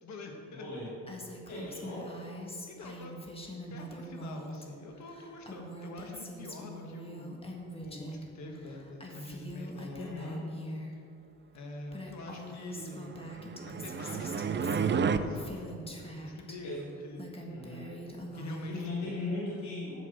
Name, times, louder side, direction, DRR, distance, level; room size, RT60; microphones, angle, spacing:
voice 1, 0.0-0.7 1.4-1.7 2.7-3.2 3.7-7.5 7.8-10.4 11.5-13.2 13.6-17.2 18.3-19.2, left 2 dB, 70° left, 2 dB, 1.4 m, -45 dB
voice 2, 0.5-0.9 1.5-2.1 10.0-10.4 16.6-16.8 17.5-18.0 18.7-20.1, left 2 dB, 90° left, -7 dB, 2.7 m, -38 dB
Female speech woman speaking, 1.1-4.7 4.9-8.2 8.5-10.9 11.6-11.7 11.9-16.6 17.0-18.9, equal, 20° left, 1.7 m, -43 dB
sound 1, 13.2-15.2, right 6 dB, 35° right, 0.6 m, -30 dB
8.2 x 7.2 x 7.8 m, 2.5 s
cardioid pair, 90°, 30 cm